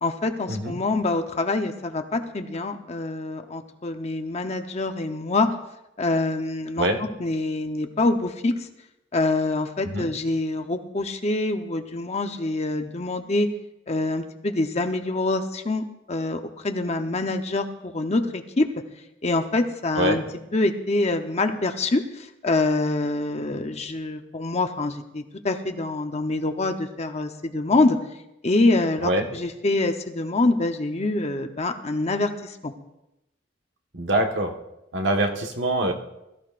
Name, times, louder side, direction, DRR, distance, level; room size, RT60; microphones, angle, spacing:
voice 1, 0.0-5.5 6.0-6.9 7.2-8.7 9.1-13.5 13.9-18.7 19.2-20.2 20.5-28.0 28.4-32.7, left 2 dB, 35° left, 6 dB, 0.9 m, -25 dB
voice 2, 33.9-34.5 34.9-35.9, right 1 dB, 75° right, 3 dB, 1.5 m, -24 dB
21.5 x 14.0 x 2.5 m, 0.89 s
head